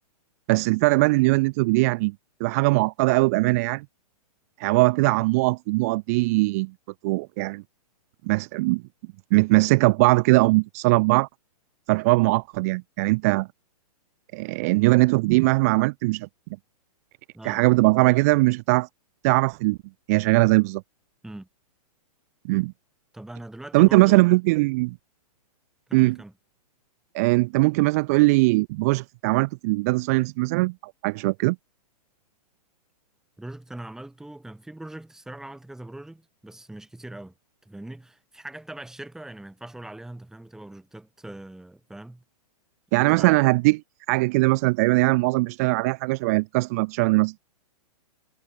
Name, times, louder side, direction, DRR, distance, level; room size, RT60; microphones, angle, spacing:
voice 1, 0.5-2.1 2.4-3.8 4.6-6.7 7.0-7.6 8.3-8.8 9.3-11.3 11.9-13.5 14.3-16.3 17.4-18.9 19.2-19.8 20.1-20.8 22.4-22.7 23.7-25.0 25.9-26.2 27.1-30.7 31.0-31.6 42.9-43.8 44.1-47.5, right 24 dB, 25° right, 0.4 m, -20 dB
voice 2, 23.1-24.3 25.9-26.3 33.4-37.3 37.6-42.2 42.9-43.4, right 1 dB, ahead, 4.2 m, -41 dB
hypercardioid pair, 160°, 20 cm